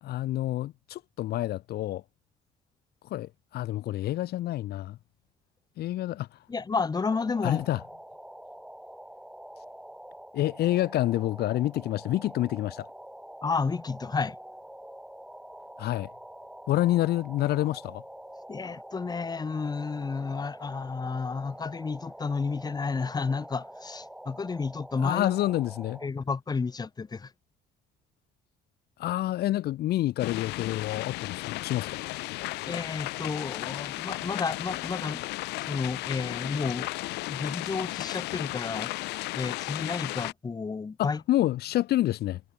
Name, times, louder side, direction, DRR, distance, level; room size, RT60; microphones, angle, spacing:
voice 1, 0.0-2.0 3.1-5.0 5.8-6.3 7.4-7.8 10.3-12.9 15.8-16.1 16.7-18.0 24.9-26.0 29.0-32.0 41.0-42.4, left 14 dB, 70° left, 1.8 m, -28 dB
voice 2, 6.5-7.6 13.4-14.3 18.5-25.3 26.0-27.3 32.7-35.2 35.7-36.9 37.3-38.9 39.3-41.2, left 4 dB, 25° left, 1.6 m, -31 dB
sound 1, 6.9-26.1, right 1 dB, 5° right, 7.0 m, -46 dB
sound 2, 30.2-40.3, left 20 dB, 90° left, 1.3 m, -35 dB
cardioid pair, 110°, 17 cm